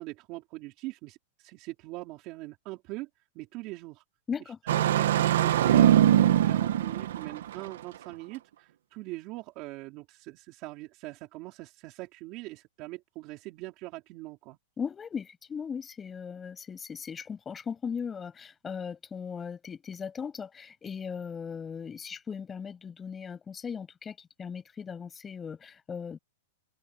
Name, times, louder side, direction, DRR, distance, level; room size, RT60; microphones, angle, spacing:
voice 1, 0.0-3.1 3.3-4.0 4.7-14.6, right 20 dB, 35° right, 4.5 m, -42 dB
voice 2, 4.3-4.6 14.8-26.2, left 6 dB, 15° left, 7.8 m, -38 dB
Engine starting, 4.7-7.7, right 11 dB, 75° right, 1.9 m, -22 dB
open air
supercardioid pair, 160°, 0 cm